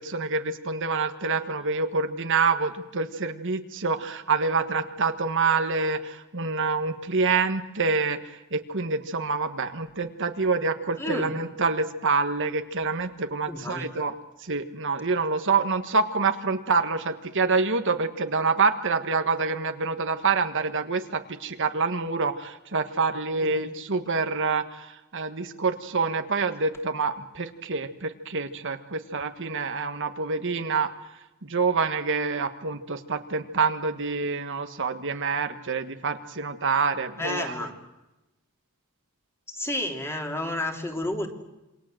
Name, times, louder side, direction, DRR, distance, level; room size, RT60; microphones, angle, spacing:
voice 1, 0.0-14.1 14.4-30.9 31.4-37.7, right 4 dB, 60° right, 7 dB, 1.6 m, -27 dB
voice 2, 11.0-11.3 13.5-13.8 23.4-23.6 37.2-37.7 39.5-41.3, left 1 dB, 10° left, 3 dB, 3.2 m, -30 dB
28.0 x 24.5 x 7.8 m, 1.0 s
head